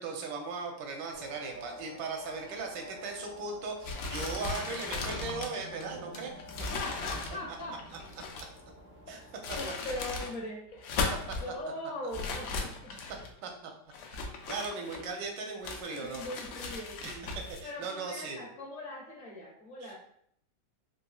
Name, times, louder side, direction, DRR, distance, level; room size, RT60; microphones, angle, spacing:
voice 1, 0.0-6.3 9.1-9.2 11.3-11.4 13.4-13.7 14.3-16.2 17.0-18.4 19.8-19.9, right 4 dB, 85° right, 2 dB, 1.3 m, -38 dB
sound 1, 1.1-9.6, left 1 dB, 20° right, 0.3 m, -48 dB
sound 2, 3.8-8.6 9.2-10.3 10.7-11.5 12.1-13.3 13.9-15.2 15.6-17.6, left 4 dB, 75° left, 1.1 m, -37 dB
voice 2, 6.7-7.8 9.5-11.0 11.4-12.9 15.9-17.2 17.6-19.9, left 1 dB, 55° left, -4 dB, 0.9 m, -40 dB
4.1 x 2.7 x 2.3 m, 0.66 s
omnidirectional pair, 1.9 m